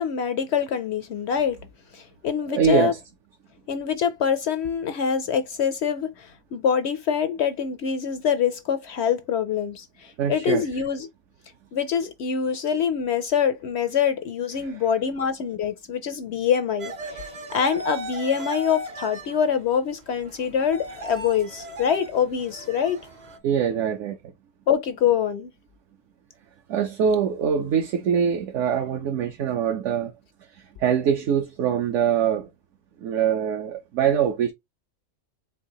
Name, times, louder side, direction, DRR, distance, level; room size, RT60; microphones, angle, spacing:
voice 1, 0.0-1.6 1.9-2.9 3.7-11.1 11.7-17.2 17.5-23.0 24.7-25.5, left 7 dB, 65° left, 0.7 m, -25 dB
voice 2, 2.4-3.0 10.2-10.7 14.6-14.8 23.4-24.2 26.7-30.1 30.5-32.5 33.0-34.5, right 8 dB, 65° right, 0.9 m, -23 dB
sound 1, 16.8-23.4, right 1 dB, 40° right, 0.7 m, -38 dB
4.6 x 3.1 x 2.8 m
omnidirectional pair, 1.5 m